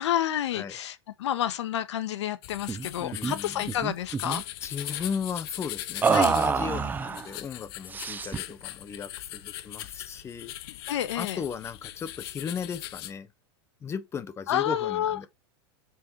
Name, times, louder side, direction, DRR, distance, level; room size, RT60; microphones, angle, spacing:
voice 1, 0.0-4.4 6.1-6.3 10.9-11.4 14.5-15.2, left 11 dB, 85° left, 1.7 m, -29 dB
sound 1, 2.4-13.1, left 14 dB, 60° left, 1.4 m, -40 dB
sound 2, 2.7-2.9 3.1-3.3 3.7-4.4 6.0-7.3 7.9-8.5, right 5 dB, 15° right, 0.7 m, -26 dB
voice 2, 3.0-3.8 4.6-10.5 10.8-13.3 13.8-15.3, left 6 dB, 20° left, 1.1 m, -36 dB
7.5 x 6.9 x 4.9 m
supercardioid pair, 150°, 14 cm